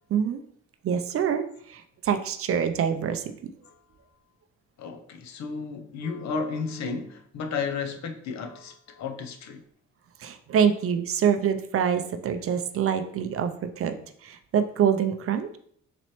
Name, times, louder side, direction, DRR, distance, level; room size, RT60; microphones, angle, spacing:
voice 1, 0.1-0.4 0.8-3.3 10.2-14.0 14.2-15.6, right 8 dB, 50° right, 0.4 m, -25 dB
voice 2, 4.8-9.6, left 5 dB, 65° left, 0.6 m, -33 dB
4.1 x 3.0 x 3.0 m
cardioid pair, 90°, 30 cm